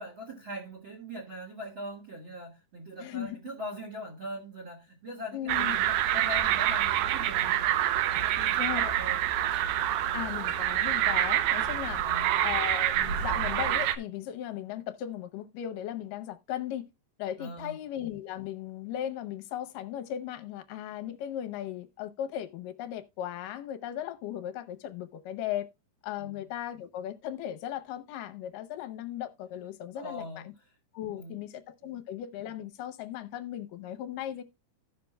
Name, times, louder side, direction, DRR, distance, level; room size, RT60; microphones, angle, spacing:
voice 1, 0.0-7.7 8.1-9.2 12.0-12.4 17.4-17.8 26.2-26.4 29.9-30.5 31.1-31.4 31.8-31.9, equal, 45° right, 2.0 m, -41 dB
voice 2, 3.0-3.4 5.3-5.8 8.6-8.9 10.1-12.0 12.4-16.9 17.2-25.7 26.0-30.5 30.9-34.4, left 11 dB, 75° left, 2.4 m, -37 dB
sound 1, 5.5-14.0, right 12 dB, 75° right, 2.1 m, -27 dB
16.0 x 5.9 x 2.2 m
omnidirectional pair, 4.0 m